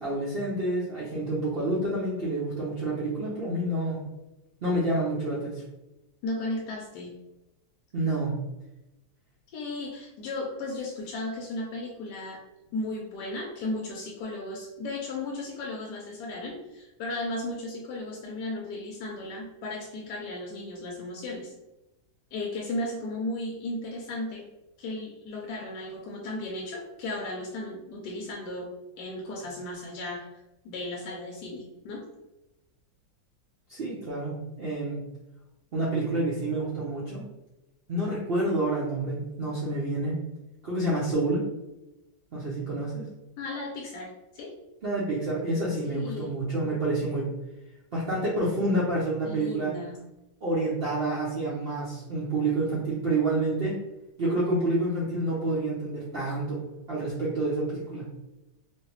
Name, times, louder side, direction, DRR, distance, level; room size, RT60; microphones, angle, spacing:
voice 1, 0.0-4.0 4.6-5.6 7.9-8.4 33.7-35.0 35.7-37.3 37.9-40.2 40.6-41.5 42.3-43.0 44.8-47.3 47.9-49.7 50.4-53.8 54.2-58.1, right 2 dB, 80° right, -7 dB, 0.5 m, -28 dB
voice 2, 6.2-7.2 9.5-12.4 12.7-21.5 22.3-24.5 24.8-28.7 29.0-30.3 30.6-32.0 43.4-44.5 45.8-46.3 49.2-50.0, left 2 dB, 70° left, -1 dB, 1.0 m, -35 dB
3.1 x 2.7 x 3.0 m, 0.96 s
omnidirectional pair, 2.1 m